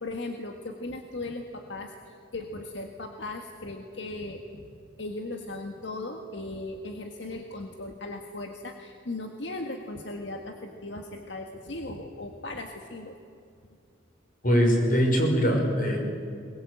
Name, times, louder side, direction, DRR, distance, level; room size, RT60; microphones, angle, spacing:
voice 1, 0.0-4.7 5.0-13.2, left 2 dB, 75° left, 3 dB, 1.7 m, -37 dB
voice 2, 14.4-16.0, equal, 50° left, 1 dB, 5.9 m, -22 dB
22.5 x 21.0 x 8.6 m, 2.5 s
head